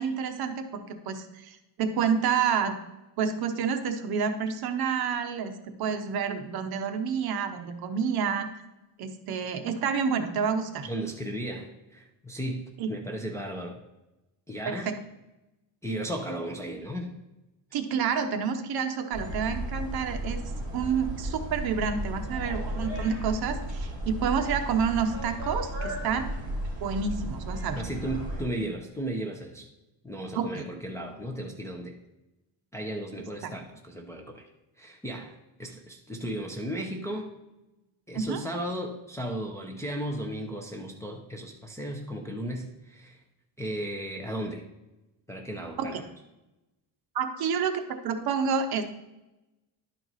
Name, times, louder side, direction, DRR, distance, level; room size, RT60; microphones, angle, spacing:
voice 1, 0.0-2.8 3.2-8.5 9.0-10.9 12.8-12.9 14.6-14.9 17.7-20.4 20.7-26.3 26.8-27.8 30.3-30.6 33.4-33.5 38.1-38.4 45.8-46.0 47.1-48.8, right 6 dB, 55° right, 7 dB, 0.8 m, -29 dB
voice 2, 10.9-13.8 14.5-14.9 15.8-17.1 27.7-29.7 30.0-32.0 32.7-34.5 34.8-35.3 35.6-37.3 38.1-43.2 43.6-44.7 45.3-46.1, right 1 dB, 5° left, -1 dB, 0.5 m, -35 dB
sound 1, 19.1-28.4, right 1 dB, 20° right, 2.4 m, -34 dB
11.0 x 4.5 x 4.0 m, 0.99 s
cardioid pair, 170°, 45 cm